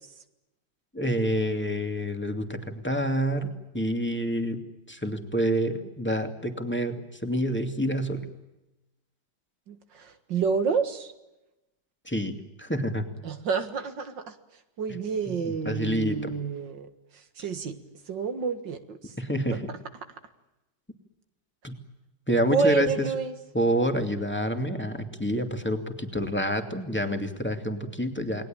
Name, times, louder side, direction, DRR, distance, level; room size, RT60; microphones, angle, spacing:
voice 1, 0.9-7.0 7.2-8.3 12.1-13.1 15.3-16.3 19.2-19.7 21.6-21.8 22.3-23.1 23.5-28.4, equal, 5° left, 5 dB, 2.6 m, -28 dB
voice 2, 9.7-11.1 13.2-14.2 14.8-16.9 17.4-17.8 18.1-19.0 22.5-23.3, right 5 dB, 80° right, 8 dB, 2.4 m, -28 dB
29.5 x 20.5 x 9.0 m, 0.98 s
omnidirectional pair, 1.9 m